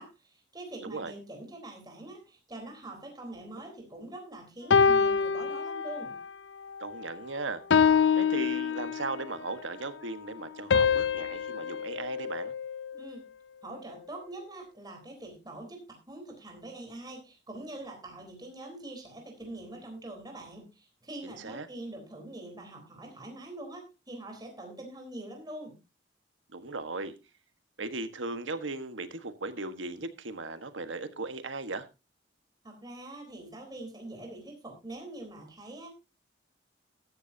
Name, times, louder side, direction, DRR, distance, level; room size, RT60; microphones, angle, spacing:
voice 1, 0.0-6.2 12.9-13.2 13.6-25.8 32.6-35.9, right 1 dB, 20° right, 2 dB, 4.0 m, -44 dB
voice 2, 0.8-1.1 6.8-7.6 8.2-12.5 21.2-21.7 26.5-27.1 27.8-31.9, right 3 dB, 90° right, 10 dB, 1.5 m, -37 dB
sound 1, 4.7-6.3 6.7-7.0 7.7-9.4 10.7-13.1, left 6 dB, 70° left, 0.6 m, -26 dB
14.0 x 13.0 x 2.8 m, 0.27 s
head